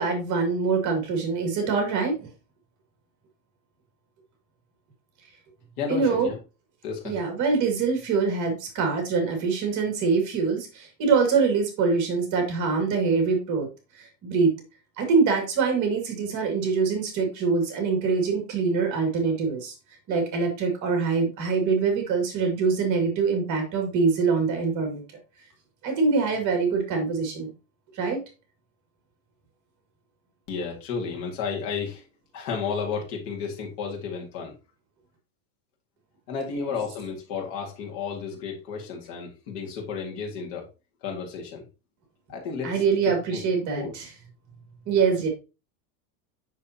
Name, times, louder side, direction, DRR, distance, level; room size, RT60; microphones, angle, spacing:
voice 1, 0.0-2.3 5.9-6.3 7.0-13.7 14.0-14.5 15.0-19.7 20.1-25.0 25.8-27.5 27.9-28.2 42.6-44.1 44.9-45.3, right 5 dB, 35° right, 3 dB, 2.1 m, -24 dB
voice 2, 5.8-6.4 6.8-7.1 30.5-32.0 32.3-34.5 36.3-40.7 41.0-41.6 42.3-42.7 43.3-43.4 43.8-43.9, left 5 dB, 55° left, 0 dB, 2.0 m, -32 dB
7.3 x 6.1 x 2.8 m, 0.29 s
supercardioid pair, 155°, 49 cm